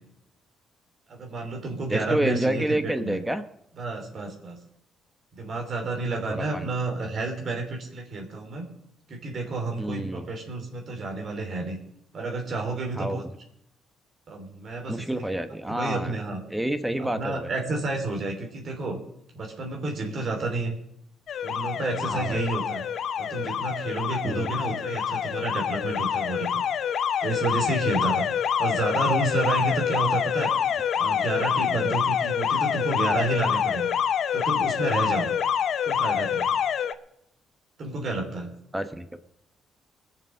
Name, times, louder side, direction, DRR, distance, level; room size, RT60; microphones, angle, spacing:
voice 1, 1.1-3.2 3.8-4.6 5.3-8.7 9.1-11.8 12.1-13.2 14.3-15.0 15.7-16.4 17.0-19.0 19.3-20.7 21.4-22.8 23.2-26.5 27.2-28.2 28.6-30.5 30.9-33.9 34.3-35.4 35.9-36.5 37.8-38.5, right 3 dB, 55° right, 2 dB, 3.0 m, -30 dB
voice 2, 1.9-3.4 6.3-6.7 9.8-10.3 12.9-13.2 14.9-16.1 16.5-17.5 22.1-22.4 24.2-24.5 38.7-39.1, right 1 dB, 5° right, 10 dB, 1.0 m, -28 dB
Alarm, 21.3-36.9, left 8 dB, 65° left, 0.7 m, -26 dB
20.5 x 6.9 x 6.5 m, 0.76 s
cardioid pair, 90°, 0 cm